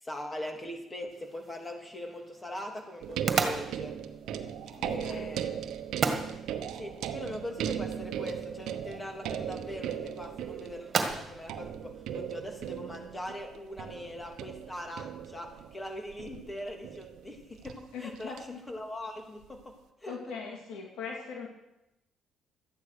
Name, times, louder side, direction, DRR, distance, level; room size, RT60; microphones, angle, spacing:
voice 1, 0.0-4.0 4.8-5.6 6.7-19.7 20.0-20.2, left 1 dB, 20° left, 3 dB, 3.1 m, -41 dB
sound 1, 1.1-12.8, right 5 dB, 45° right, 1.9 m, -37 dB
sound 2, 3.0-18.4 19.4-19.6, right 9 dB, 75° right, 1.0 m, -38 dB
voice 2, 4.7-5.3 17.9-18.4 20.0-21.5, left 5 dB, 75° left, 1 dB, 2.5 m, -40 dB
13.0 x 9.7 x 6.6 m, 0.89 s
supercardioid pair, 75°, 0 cm